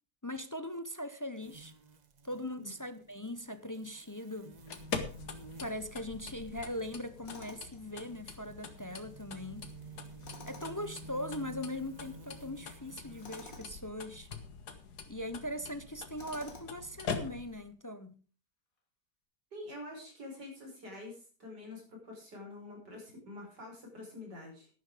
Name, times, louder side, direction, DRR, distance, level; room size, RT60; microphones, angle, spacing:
voice 1, 0.2-1.7 2.2-4.5 5.6-9.7 10.5-14.3 15.1-18.2, left 1 dB, 25° left, 0.4 m, -40 dB
sound 1, 1.4-13.6, right 3 dB, 35° right, 0.8 m, -53 dB
sound 2, 4.5-17.7, left 5 dB, 75° left, 2.1 m, -44 dB
Tools, 7.2-7.8 10.2-10.9 13.2-13.7 16.2-16.9, left 3 dB, 55° left, 2.6 m, -50 dB
voice 2, 19.5-24.7, left 2 dB, 85° right, 6.1 m, -47 dB
11.5 x 11.0 x 5.0 m
omnidirectional pair, 1.8 m